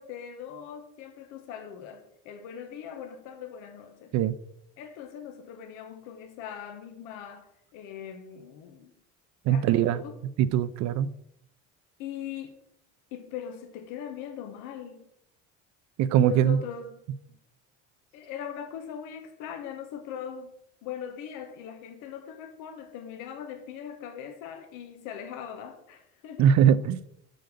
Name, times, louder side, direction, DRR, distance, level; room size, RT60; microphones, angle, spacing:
voice 1, 0.0-4.2 4.8-8.9 9.5-10.2 12.0-12.6 13.1-15.1 16.1-17.0 18.1-20.5 20.8-26.5, left 8 dB, 85° left, 1.2 m, -40 dB
voice 2, 9.5-10.0 10.5-11.1 16.0-16.6 26.4-27.0, right 9 dB, 60° right, 0.7 m, -21 dB
7.8 x 5.4 x 6.7 m
cardioid pair, 125°, 31 cm